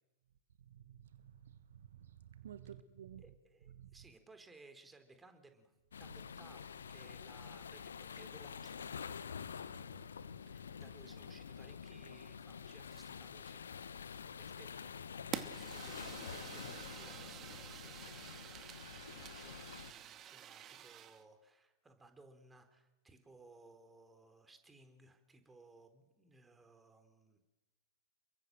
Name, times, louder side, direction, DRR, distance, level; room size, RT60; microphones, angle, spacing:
voice 1, 0.7-3.2 3.7-3.9, right 10 dB, 65° right, 1.2 m, -53 dB
voice 2, 3.2-5.7 6.0-8.9 10.5-13.6 14.1-15.0 15.4-18.7 19.1-27.4, right 3 dB, 10° right, 4.1 m, -61 dB
sound 1, 5.9-19.9, left 6 dB, 70° left, 1.2 m, -48 dB
Fire, 15.3-21.2, right 10 dB, 30° right, 2.1 m, -48 dB
29.5 x 23.0 x 7.8 m
figure-of-eight pair, 90°, 0 cm